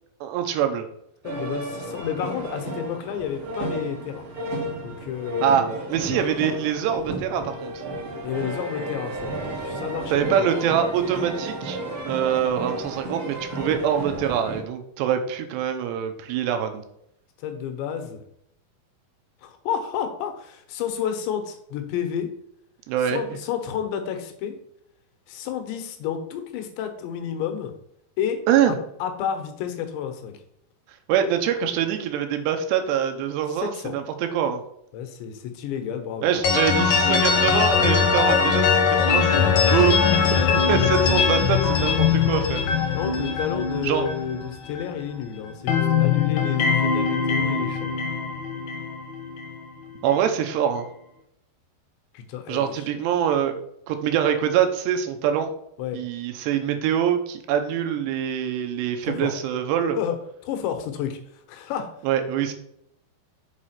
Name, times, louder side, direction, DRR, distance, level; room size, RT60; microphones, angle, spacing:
voice 1, 0.2-0.8 5.4-7.8 10.1-11.8 12.0-16.8 22.9-23.2 28.5-28.8 31.1-34.6 36.2-42.6 43.8-44.1 50.0-50.9 52.5-53.6 53.9-55.5 55.9-60.0 62.0-62.5, right 9 dB, 80° right, 6 dB, 3.0 m, -24 dB
voice 2, 1.2-4.3 4.8-5.8 6.1-6.3 8.2-10.5 17.4-18.2 19.4-22.3 23.0-24.6 25.3-27.7 28.2-30.4 33.6-34.0 34.9-36.4 42.9-47.9 52.2-52.9 55.8-56.0 59.0-59.3 60.0-61.2 61.5-62.0, left 8 dB, 85° left, 6 dB, 3.3 m, -31 dB
sound 1, 1.2-14.6, right 1 dB, 55° right, 1.5 m, -33 dB
sound 2, 36.4-45.2 45.4-49.6, left 6 dB, 65° left, 1.8 m, -21 dB
7.4 x 4.9 x 5.8 m, 0.74 s
omnidirectional pair, 4.9 m